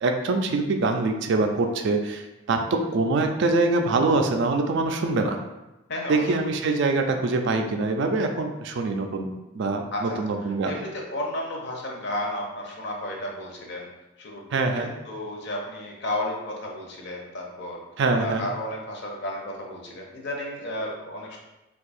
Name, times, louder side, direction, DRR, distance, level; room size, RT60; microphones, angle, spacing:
voice 1, 0.0-2.2 2.5-5.4 6.1-9.3 9.5-10.8 14.5-14.9 18.0-18.5, right 3 dB, 55° right, 5 dB, 0.3 m, -24 dB
voice 2, 5.9-6.5 9.9-10.2 10.7-13.9 14.2-17.8 18.2-21.4, left 1 dB, 55° left, 0 dB, 0.7 m, -33 dB
2.6 x 2.3 x 4.1 m, 1.0 s
head